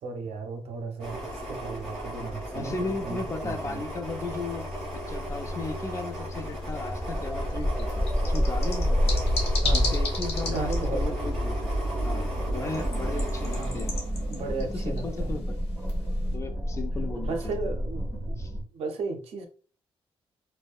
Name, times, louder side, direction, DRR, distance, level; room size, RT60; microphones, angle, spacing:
voice 1, 0.0-3.8 9.6-9.9 10.5-11.2 13.6-13.8 14.3-15.4 17.3-18.0 18.7-19.5, right 3 dB, 80° right, 4 dB, 0.6 m, -35 dB
sound 1, 1.0-14.7 15.1-15.3, equal, 5° left, 1.5 m, -30 dB
voice 2, 2.5-4.6 4.9-9.1 9.7-11.7 12.0-13.9 14.7-15.4 16.3-17.7 18.4-18.5, left 3 dB, 30° left, 6 dB, 0.4 m, -36 dB
sound 2, 6.0-16.3, left 3 dB, 75° left, 0.9 m, -39 dB
sound 3, 6.8-18.6, equal, 25° right, 1.2 m, -32 dB
2.7 x 2.1 x 2.3 m, 0.38 s
cardioid pair, 110°, 10 cm